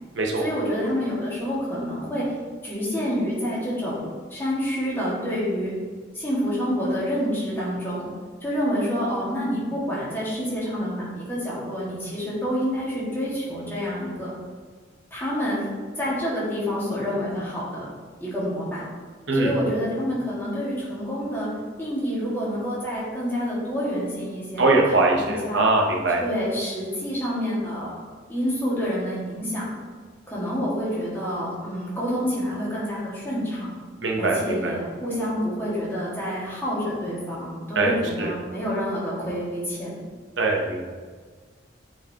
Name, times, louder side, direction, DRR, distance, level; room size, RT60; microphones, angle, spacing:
voice 1, 0.4-2.3 2.6-4.0 4.3-5.7 6.1-8.1 8.4-14.3 15.1-15.6 16.0-17.9 18.2-18.8 19.3-21.5 21.8-25.6 26.2-28.0 28.3-29.7 30.3-33.7 34.2-40.0, equal, 10° left, -8 dB, 1.8 m, -28 dB
voice 2, 24.6-26.2 34.0-34.7 37.8-38.3 40.4-40.9, right 2 dB, 80° right, 0 dB, 0.8 m, -22 dB
7.8 x 4.6 x 2.8 m, 1.5 s
head